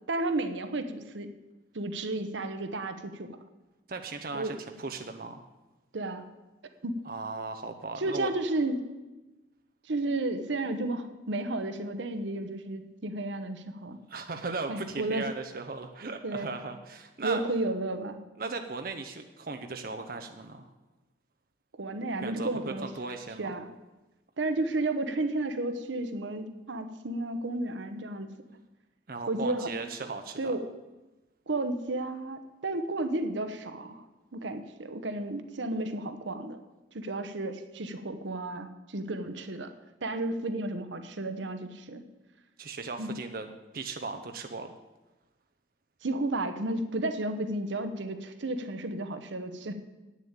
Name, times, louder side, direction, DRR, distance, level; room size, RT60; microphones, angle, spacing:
voice 1, 0.1-1.3 1.7-3.4 4.3-4.5 5.9-6.2 6.8-7.0 8.0-8.9 9.9-14.0 14.7-15.3 16.2-16.5 17.2-18.2 21.8-22.9 23.4-23.7 24.4-28.3 29.3-29.7 30.4-30.7 31.5-34.1 34.3-36.6 36.9-39.7 40.0-42.0 43.0-43.1 46.0-49.8, right 2 dB, 80° right, 9 dB, 0.9 m, -32 dB
voice 2, 3.9-5.4 7.0-8.3 14.1-17.4 18.4-20.7 22.2-23.5 29.1-30.5 42.6-43.5 43.7-44.7, right 3 dB, 50° right, 6 dB, 0.7 m, -37 dB
8.7 x 7.0 x 8.8 m, 1.1 s
head